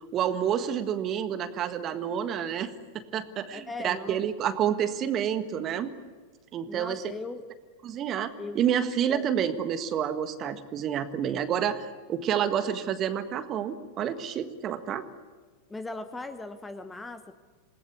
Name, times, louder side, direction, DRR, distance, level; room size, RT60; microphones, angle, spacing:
voice 1, 0.0-5.9 6.5-7.1 7.8-15.0, right 9 dB, 30° right, 10 dB, 1.6 m, -29 dB
voice 2, 3.5-4.6 6.7-7.4 8.4-8.6 9.1-9.3 15.7-17.3, left 2 dB, 10° left, 10 dB, 1.3 m, -39 dB
27.5 x 19.5 x 8.5 m, 1.4 s
figure-of-eight pair, 90°, 0 cm